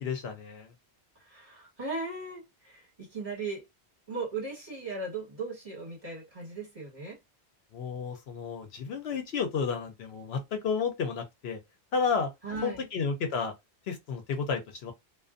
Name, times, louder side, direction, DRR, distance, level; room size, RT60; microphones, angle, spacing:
voice 1, 0.0-0.7 7.7-11.6 11.9-12.3 12.6-13.5 13.9-14.9, left 5 dB, 70° left, 0.8 m, -31 dB
voice 2, 1.3-3.6 4.1-7.1 12.4-12.9, right 3 dB, 30° right, 1.5 m, -37 dB
2.4 x 2.3 x 2.5 m
omnidirectional pair, 1.1 m